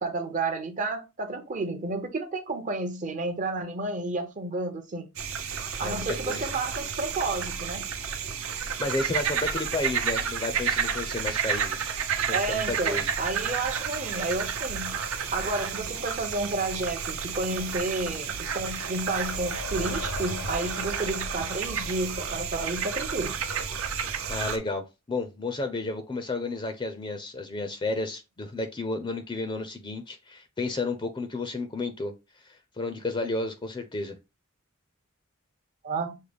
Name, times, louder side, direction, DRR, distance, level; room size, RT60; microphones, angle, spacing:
voice 1, 0.0-5.1 5.8-7.9 12.3-15.0 15.3-23.4 35.8-36.2, right 2 dB, 35° right, 0.6 m, -31 dB
sound 1, 5.2-24.6, right 7 dB, 75° right, 0.8 m, -31 dB
voice 2, 5.8-6.5 8.8-11.9 12.3-13.1 24.3-32.1 32.4-34.1, left 2 dB, 25° left, 0.5 m, -32 dB
sound 2, 18.4-23.2, left 4 dB, 65° left, 0.7 m, -42 dB
6.3 x 2.2 x 3.3 m
head